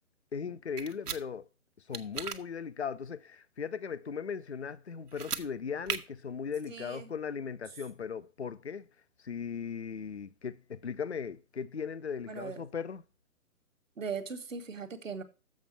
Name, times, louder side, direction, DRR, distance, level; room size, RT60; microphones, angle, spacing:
voice 1, 0.3-1.5 1.9-8.9 9.2-13.0, left 6 dB, 50° left, 0.5 m, -38 dB
sound 1, 0.8-1.2 1.9-2.4 5.1-5.5 5.9-6.0, right 7 dB, 80° right, 1.2 m, -35 dB
voice 2, 6.7-7.1 12.3-12.6 14.0-15.2, right 5 dB, 55° right, 1.4 m, -39 dB
7.3 x 5.2 x 7.1 m
hypercardioid pair, 180°, 46 cm